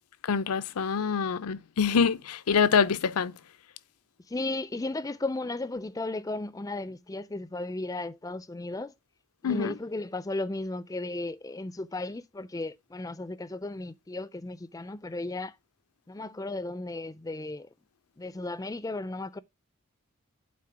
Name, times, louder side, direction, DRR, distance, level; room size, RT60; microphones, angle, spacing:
voice 1, 0.2-3.3 9.4-9.7, left 6 dB, 85° left, 0.6 m, -25 dB
voice 2, 4.3-8.9 9.4-15.6 16.1-17.7 18.2-19.4, left 2 dB, 15° left, 0.4 m, -35 dB
8.6 x 4.1 x 4.9 m
head